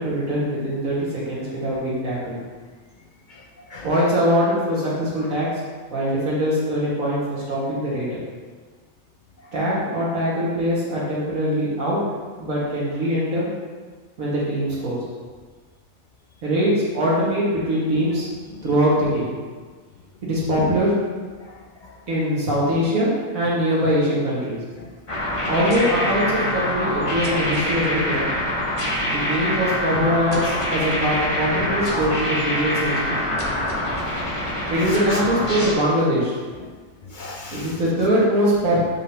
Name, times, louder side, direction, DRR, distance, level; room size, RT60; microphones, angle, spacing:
voice 1, 0.0-2.3 3.8-5.5 5.9-8.2 9.5-12.0 12.4-13.5 14.2-15.0 16.4-18.3 18.6-19.3 20.2-20.9 22.1-24.6 25.5-28.3 29.0-33.2 34.7-36.4 37.5-38.8, equal, 85° right, -7 dB, 2.0 m, -22 dB
sound 1, 25.1-35.7, left 1 dB, 25° left, 1.0 m, -25 dB
voice 2, 33.4-34.0 35.1-35.2 37.1-37.7, left 3 dB, 70° left, 1 dB, 0.4 m, -37 dB
7.6 x 5.1 x 2.8 m, 1.5 s
omnidirectional pair, 1.4 m